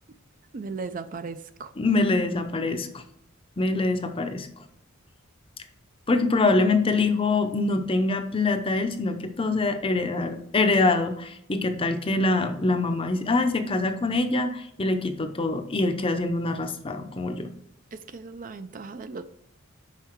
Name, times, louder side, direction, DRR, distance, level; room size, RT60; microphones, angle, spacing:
voice 1, 0.5-1.7 17.9-19.2, right 4 dB, 40° right, 11 dB, 0.4 m, -37 dB
voice 2, 1.8-3.0 3.6-4.5 6.1-17.5, left 3 dB, 25° left, 7 dB, 0.6 m, -24 dB
5.8 x 5.4 x 4.5 m, 0.74 s
head